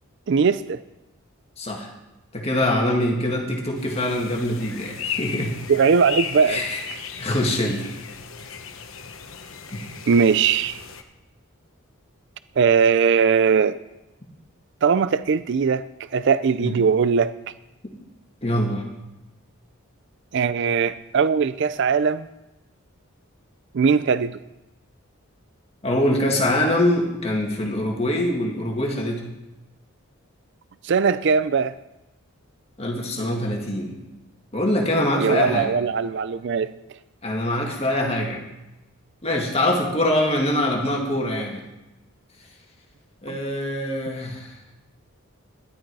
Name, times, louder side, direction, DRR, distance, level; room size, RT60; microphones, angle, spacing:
voice 1, 0.3-0.8 5.7-6.6 10.1-10.8 12.6-13.8 14.8-15.9 16.1-17.3 20.3-22.3 23.7-24.4 30.8-31.7 35.2-36.7 43.3-43.4, right 6 dB, 55° right, 0.4 m, -20 dB
voice 2, 1.6-1.9 2.3-5.6 6.5-6.8 7.2-7.9 9.7-9.8 16.6-16.7 17.8-17.9 18.4-18.8 25.8-29.2 32.8-34.0 34.5-35.7 37.2-38.4 39.2-41.6 43.2-44.5, left 1 dB, 30° left, 2.2 m, -24 dB
sound 1, 3.8-11.0, left 7 dB, 65° left, 1.1 m, -36 dB
12.5 x 11.5 x 4.8 m
head